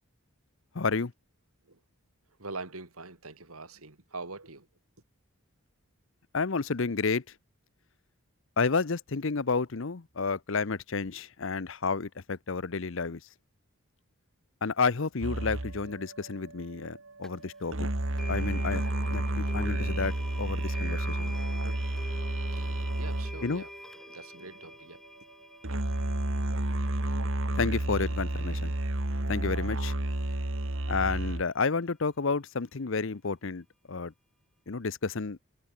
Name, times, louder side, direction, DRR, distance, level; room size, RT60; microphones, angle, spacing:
voice 1, 0.7-1.1 6.3-7.2 8.6-13.2 14.6-17.9 18.3-18.8 19.1-19.2 19.5-20.1 20.4-21.3 23.4-23.6 27.5-28.7 29.3-29.9 30.9-34.1 34.7-35.4, left 4 dB, 60° left, 0.7 m, -30 dB
voice 2, 2.4-4.7 22.6-23.7 24.1-25.0, right 3 dB, 80° right, 3.5 m, -43 dB
sound 1, 15.2-23.6 25.6-31.4, right 1 dB, 60° right, 1.8 m, -31 dB
sound 2, 17.2-17.3 18.2-29.2, left 1 dB, ahead, 1.8 m, -47 dB
head